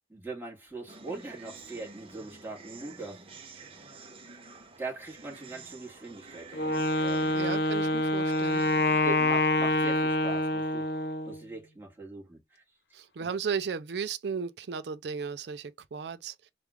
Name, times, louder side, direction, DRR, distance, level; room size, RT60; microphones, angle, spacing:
voice 1, 0.1-3.2 4.8-7.4 9.0-10.9 11.3-12.6 13.2-13.3, right 3 dB, 10° right, 1.6 m, -41 dB
sound 1, 0.9-9.0, right 3 dB, 30° right, 0.7 m, -49 dB
Wind instrument woodwind instrument, 6.5-11.4, left 2 dB, 65° left, 0.5 m, -26 dB
voice 2, 7.3-8.6 12.9-16.5, right 6 dB, 70° right, 0.4 m, -35 dB
3.5 x 2.3 x 3.0 m
head